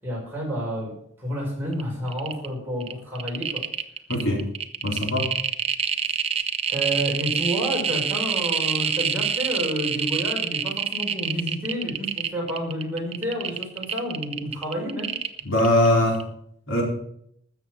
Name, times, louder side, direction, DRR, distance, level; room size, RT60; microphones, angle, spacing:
voice 1, 0.0-3.7 6.7-15.1, equal, 10° right, -4 dB, 5.4 m, -30 dB
sound 1, 1.7-1.8 2.1-2.5 2.8-15.9 16.1-16.2, right 7 dB, 30° right, 0.6 m, -26 dB
voice 2, 4.1-4.4 4.8-5.3 15.4-16.2 16.7-16.8, left 1 dB, 80° left, 0 dB, 4.2 m, -21 dB
13.5 x 7.4 x 7.6 m, 0.68 s
head